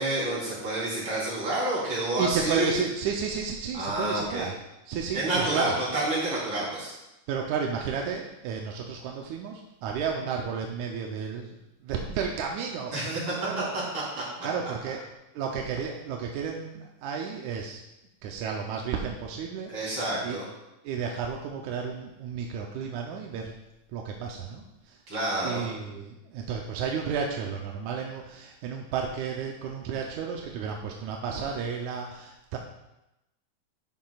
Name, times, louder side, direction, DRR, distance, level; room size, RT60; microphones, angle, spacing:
voice 1, 0.0-2.7 3.7-4.4 5.1-6.9 12.9-13.3 13.7-14.2 14.6-14.7 19.7-20.5 25.1-25.7, right 1 dB, 45° right, -7 dB, 4.2 m, -29 dB
voice 2, 2.1-4.6 4.9-5.7 7.3-11.5 11.8-13.7 14.4-15.0 15.4-17.8 18.2-20.0 20.2-20.4 20.8-23.5 23.9-25.0 25.4-32.6, right 6 dB, 85° right, 1 dB, 2.1 m, -32 dB
11.5 x 7.4 x 2.4 m, 0.92 s
omnidirectional pair, 3.3 m